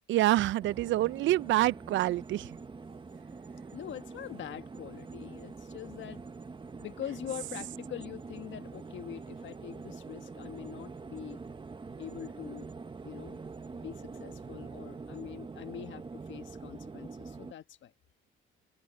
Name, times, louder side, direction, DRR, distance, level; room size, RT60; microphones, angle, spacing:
voice 1, 0.1-2.6, right 15 dB, 75° right, 0.4 m, -27 dB
sound 1, 0.6-17.5, right 4 dB, 25° right, 0.9 m, -45 dB
voice 2, 3.7-6.2 6.8-11.4 12.0-12.7 13.0-13.4 13.7-17.9, left 10 dB, 70° left, 1.3 m, -43 dB
cardioid pair, 90°, 20 cm